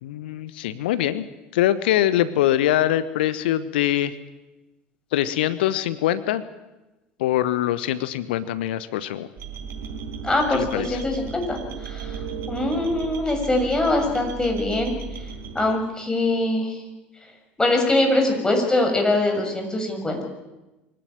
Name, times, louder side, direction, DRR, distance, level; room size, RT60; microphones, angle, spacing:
voice 1, 0.0-1.2 1.5-4.1 5.1-6.4 7.2-9.3 10.5-11.0, left 12 dB, 65° left, 14 dB, 1.0 m, -23 dB
sound 1, 9.4-15.7, right 6 dB, 50° right, 5.1 m, -35 dB
voice 2, 10.2-11.6 11.8-12.1 12.5-14.9 15.5-16.7 17.6-20.2, left 2 dB, 15° left, 2 dB, 6.9 m, -22 dB
24.0 x 17.5 x 9.0 m, 1.0 s
figure-of-eight pair, 65°, 6 cm